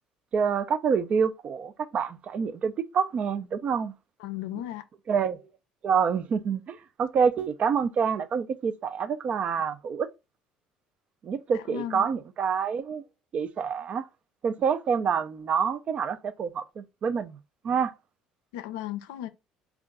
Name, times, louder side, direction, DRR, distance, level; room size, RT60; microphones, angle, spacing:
voice 1, 0.3-3.9 5.1-5.4 5.8-10.1 11.2-13.0 13.3-14.1 14.4-17.4 17.6-17.9, right 6 dB, 50° right, 0.5 m, -27 dB
voice 2, 4.2-4.8 11.5-12.1 18.5-19.3, left 12 dB, 85° left, 0.4 m, -35 dB
4.4 x 2.4 x 3.6 m
supercardioid pair, 75°, 3 cm